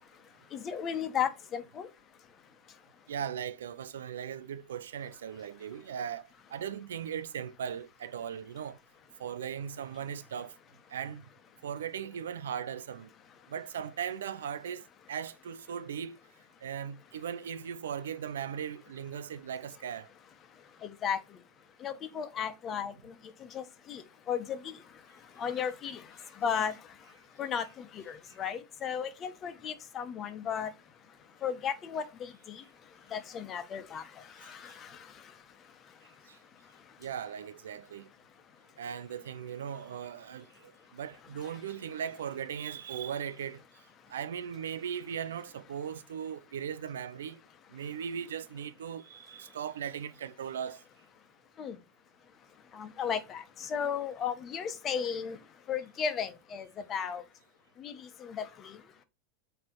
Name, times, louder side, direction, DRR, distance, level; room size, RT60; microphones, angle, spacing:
voice 1, 0.5-1.9 20.8-21.2 21.8-23.1 23.4-24.8 25.4-26.8 27.4-30.7 31.4-32.6 33.1-35.2 51.6-51.8 52.7-55.4 55.7-57.2 57.8-58.8, left 7 dB, 30° left, 1.3 m, -35 dB
voice 2, 3.1-8.8 9.2-10.5 10.9-11.3 11.6-13.1 13.5-16.2 16.6-20.1 34.7-34.8 36.3-36.4 37.0-38.1 38.8-43.6 44.1-47.4 47.7-50.8, right 8 dB, 90° right, 0.5 m, -38 dB
8.5 x 3.3 x 4.6 m
hypercardioid pair, 120°, 0 cm